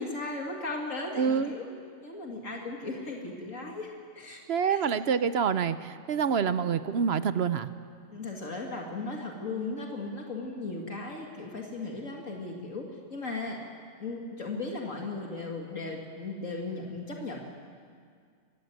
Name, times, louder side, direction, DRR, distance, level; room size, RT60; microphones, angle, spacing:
voice 1, 0.0-1.7 2.0-4.8 6.5-6.6 8.1-12.8 13.1-13.6 14.0-17.4, left 3 dB, 70° left, 0 dB, 2.7 m, -36 dB
voice 2, 1.2-1.5 4.5-7.7, right 7 dB, 55° right, 13 dB, 0.9 m, -27 dB
24.0 x 15.0 x 9.4 m, 2.1 s
omnidirectional pair, 1.4 m